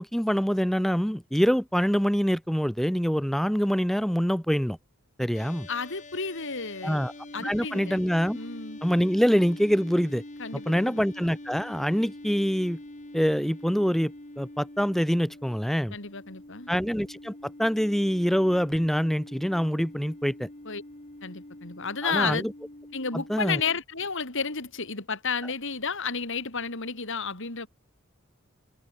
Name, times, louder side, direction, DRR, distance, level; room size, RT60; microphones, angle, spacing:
voice 1, 0.0-4.8 5.2-5.7 6.8-7.1 7.4-8.4 8.8-10.2 10.5-12.8 13.1-16.0 16.7-20.5 22.0-22.5 23.1-23.6, equal, ahead, 1.0 m, -25 dB
sound 1, 5.3-23.8, left 1 dB, 35° left, 2.4 m, -45 dB
voice 2, 5.7-7.0 7.3-8.0 8.3-8.8 10.4-11.0 15.9-16.7 20.6-20.8 21.2-22.4 22.9-27.7, left 5 dB, 60° left, 4.3 m, -32 dB
head